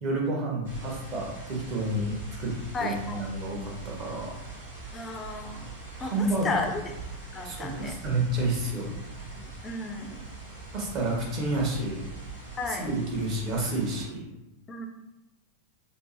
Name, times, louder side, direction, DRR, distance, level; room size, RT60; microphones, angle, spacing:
voice 1, 0.0-4.3 6.0-6.5 7.4-8.9 10.7-12.0 12.7-14.3, right 2 dB, 35° right, -2 dB, 0.9 m, -30 dB
sound 1, 0.6-14.1, right 3 dB, 65° right, 1.3 m, -42 dB
voice 2, 2.7-3.2 4.9-5.7 6.0-6.8 7.3-8.0 9.4-10.3 12.6-12.9 14.7-14.9, left 3 dB, 20° left, 4 dB, 0.4 m, -33 dB
3.6 x 2.0 x 2.8 m, 0.96 s
figure-of-eight pair, 90°, 0 cm